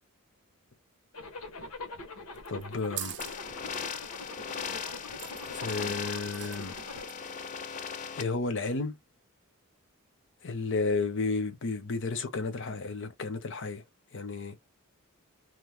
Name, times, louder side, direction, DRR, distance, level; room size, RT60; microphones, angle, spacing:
Zipper (clothing), 1.1-7.1, left 2 dB, 85° left, 0.9 m, -44 dB
sound 1, 2.4-3.4 5.2-5.8 6.2-6.8 7.1-7.5, right 12 dB, 55° right, 0.4 m, -41 dB
voice 1, 2.5-3.1 5.5-6.8 7.7-8.9 10.4-13.8 14.1-14.5, left 3 dB, 60° left, 0.7 m, -32 dB
sound 2, 3.2-8.2, left 6 dB, 35° left, 0.3 m, -38 dB
3.0 x 2.0 x 3.4 m
head